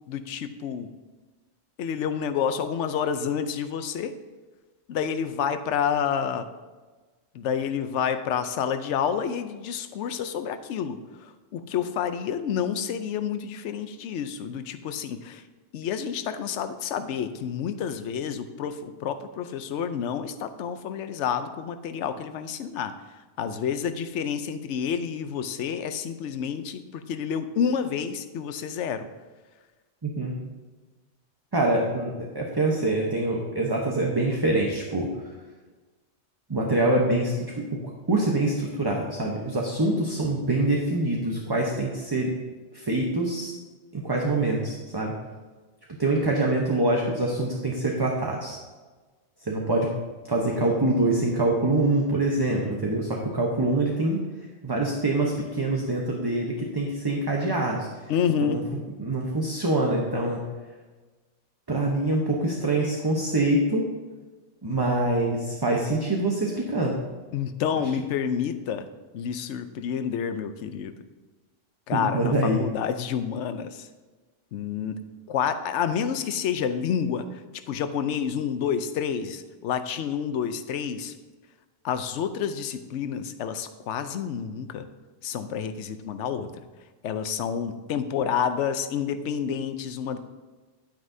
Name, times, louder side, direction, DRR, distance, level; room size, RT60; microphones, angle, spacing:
voice 1, 0.1-0.9 1.8-4.1 4.9-6.5 7.3-15.4 15.7-23.0 23.4-29.1 58.1-58.6 67.3-68.9 69.1-71.0 71.9-73.9 74.5-77.4 77.7-81.1 81.8-84.9 85.2-86.5 87.0-90.2, left 7 dB, 75° left, 10 dB, 0.9 m, -29 dB
voice 2, 30.0-30.3 31.5-35.1 36.5-37.8 38.1-42.3 42.7-43.5 43.9-45.1 46.0-48.6 49.4-49.9 50.3-54.2 54.6-57.9 58.4-58.6 59.0-60.4 61.7-63.8 64.6-66.9 71.9-72.6, right 2 dB, 20° right, -1 dB, 0.8 m, -25 dB
10.0 x 9.4 x 2.7 m, 1.3 s
omnidirectional pair, 1.2 m